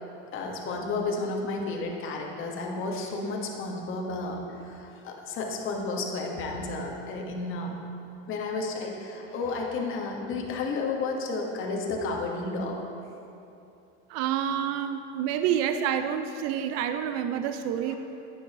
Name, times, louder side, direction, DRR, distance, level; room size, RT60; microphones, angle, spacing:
voice 1, 0.3-7.8 8.3-12.8 17.8-18.0, left 3 dB, 40° left, 0 dB, 1.3 m, -32 dB
voice 2, 14.1-18.0, right 9 dB, 60° right, 9 dB, 0.5 m, -28 dB
10.0 x 8.6 x 2.9 m, 2.8 s
supercardioid pair, 120°, 30 cm